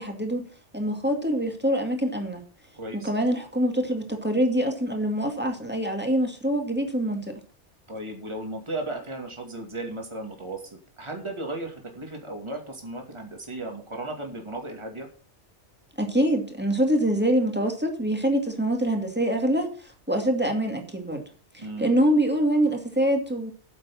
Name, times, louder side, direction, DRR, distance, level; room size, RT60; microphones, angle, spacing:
voice 1, 0.0-2.4 2.9-7.3 16.0-21.2 21.5-23.5, right 1 dB, 10° right, 2.3 m, -25 dB
voice 2, 2.7-3.1 7.9-15.1 21.6-21.9, right 2 dB, 25° right, 2.5 m, -35 dB
9.6 x 7.5 x 7.1 m
omnidirectional pair, 1.2 m